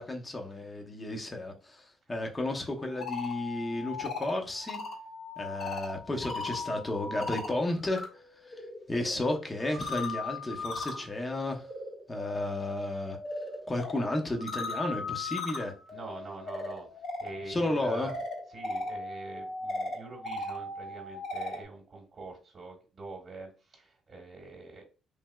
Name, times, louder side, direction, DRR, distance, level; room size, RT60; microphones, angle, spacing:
voice 1, 0.0-4.8 5.4-11.7 12.1-13.2 13.7-15.7 17.5-18.1, left 1 dB, 25° left, 2 dB, 0.7 m, -33 dB
sound 1, 2.8-8.1 8.4-21.6, left 3 dB, 50° left, 1.1 m, -38 dB
voice 2, 15.9-16.9 17.2-18.1 18.5-24.8, right 3 dB, 40° right, 0 dB, 1.1 m, -45 dB
3.2 x 2.8 x 2.2 m, 0.36 s
cardioid pair, 80°, 0 cm